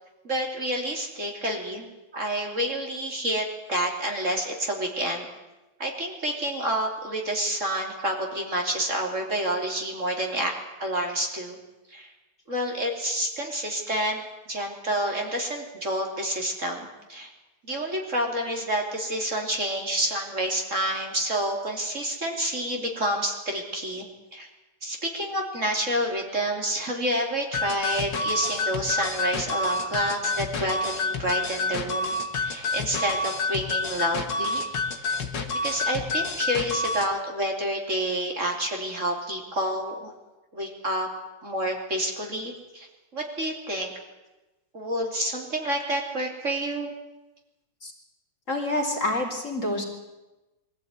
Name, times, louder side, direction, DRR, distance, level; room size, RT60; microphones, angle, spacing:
voice 1, 0.2-5.3 5.8-10.5 10.8-11.6 11.9-12.1 12.5-14.2 14.5-17.3 17.7-24.5 24.8-34.7 35.0-35.2 35.6-40.1 40.5-41.1 41.4-42.9 43.1-43.9 44.7-46.9, right 1 dB, 40° right, 1 dB, 3.4 m, -29 dB
sound 1, 27.5-37.1, left 3 dB, 65° left, 2.5 m, -28 dB
voice 2, 48.5-49.8, left 1 dB, 40° left, 1 dB, 3.5 m, -27 dB
22.5 x 15.0 x 9.7 m, 1.1 s
omnidirectional pair, 2.1 m